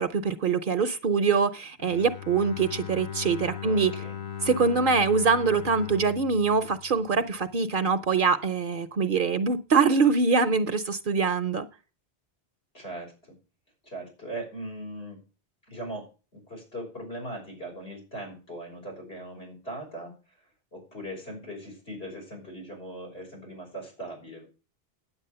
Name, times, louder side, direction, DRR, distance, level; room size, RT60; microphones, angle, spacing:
voice 1, 0.0-3.9 4.4-11.7, right 5 dB, 60° right, 0.8 m, -24 dB
Bowed string instrument, 1.8-7.7, left 9 dB, 55° left, 0.8 m, -39 dB
voice 2, 3.6-4.2 12.7-13.4 13.8-15.2 15.7-20.1 20.7-24.5, right 1 dB, 80° left, 6.4 m, -39 dB
9.8 x 8.2 x 6.8 m
omnidirectional pair, 1.1 m